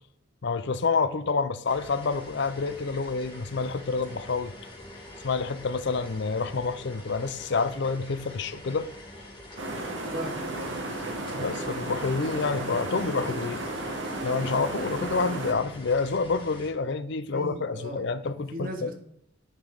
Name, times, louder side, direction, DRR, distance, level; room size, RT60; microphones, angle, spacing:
voice 1, 0.4-4.5 5.2-8.9 11.3-13.6 14.2-18.9, left 4 dB, 60° left, 0.5 m, -28 dB
sound 1, 1.6-16.7, left 1 dB, 25° left, 2.7 m, -45 dB
sound 2, 9.6-15.5, right 2 dB, 65° right, 1.6 m, -34 dB
voice 2, 10.1-10.8 17.3-18.1 18.5-18.9, right 1 dB, 45° right, 1.5 m, -37 dB
10.0 x 5.4 x 3.9 m
head